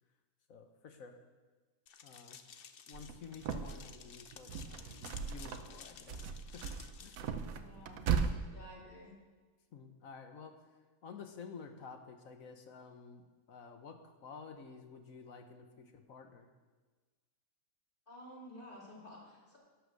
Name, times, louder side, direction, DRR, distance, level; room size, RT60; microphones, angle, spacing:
voice 1, 0.5-1.1 2.0-2.4 2.9-6.6 7.0-7.2 9.7-10.5 11.0-16.5, left 5 dB, 70° left, 6 dB, 1.4 m, -51 dB
sound 1, 1.9-7.2, left 7 dB, 50° left, 0.7 m, -54 dB
sound 2, 2.9-4.0 4.3-5.8 6.1-8.3, right 6 dB, 70° right, 1.2 m, -37 dB
voice 2, 7.5-8.0 8.5-9.1 18.1-19.6, equal, 35° left, -5 dB, 3.4 m, -52 dB
11.5 x 8.1 x 6.5 m, 1.4 s
omnidirectional pair, 1.5 m